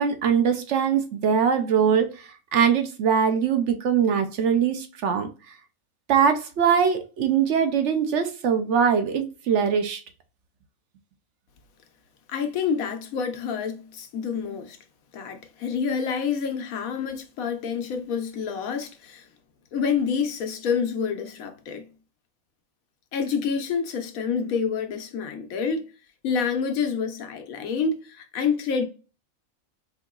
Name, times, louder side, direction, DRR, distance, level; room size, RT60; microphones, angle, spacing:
voice 1, 0.0-5.3 6.1-10.0, right 7 dB, 65° right, 0.9 m, -22 dB
voice 2, 12.3-14.8 15.1-19.3 19.7-21.9 23.1-25.9 26.2-28.8, left 6 dB, 85° left, 1.2 m, -28 dB
4.6 x 2.8 x 2.3 m
omnidirectional pair, 1.4 m